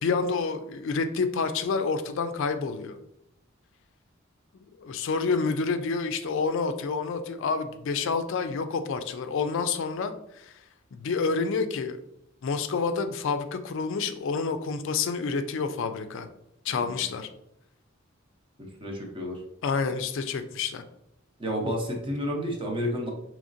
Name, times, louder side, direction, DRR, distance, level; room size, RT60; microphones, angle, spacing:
voice 1, 0.0-3.0 4.8-10.6 10.9-12.0 12.4-16.3 16.6-17.3 19.6-20.8, left 4 dB, 65° left, 8 dB, 0.4 m, -28 dB
voice 2, 16.7-17.1 18.6-19.4 21.4-23.1, equal, 25° right, 0 dB, 0.8 m, -31 dB
4.9 x 3.1 x 2.6 m, 0.81 s
head